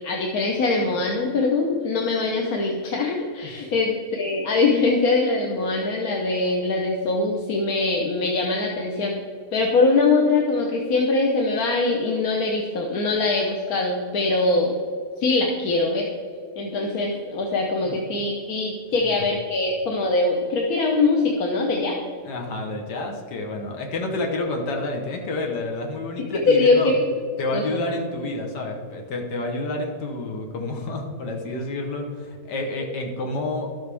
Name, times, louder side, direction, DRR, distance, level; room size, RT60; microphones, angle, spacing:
voice 1, 0.0-9.2 9.5-14.7 15.2-16.1 16.6-22.0 26.3-27.0 27.5-27.8, left 3 dB, 65° left, 0 dB, 1.3 m, -22 dB
voice 2, 22.2-26.9 27.4-33.7, left 2 dB, 90° left, 2 dB, 1.7 m, -29 dB
12.0 x 7.8 x 3.4 m, 2.3 s
omnidirectional pair, 1.7 m